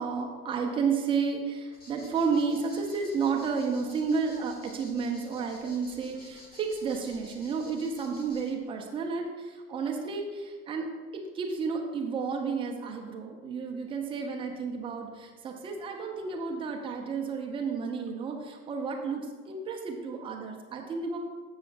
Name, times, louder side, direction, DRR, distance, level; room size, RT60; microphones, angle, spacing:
voice 1, 0.0-10.9 11.1-21.2, right 5 dB, 10° right, 2 dB, 0.7 m, -31 dB
sound 1, 1.7-8.5, left 2 dB, 20° left, 1.2 m, -53 dB
14.5 x 5.9 x 2.5 m, 1.4 s
figure-of-eight pair, 100°, 47 cm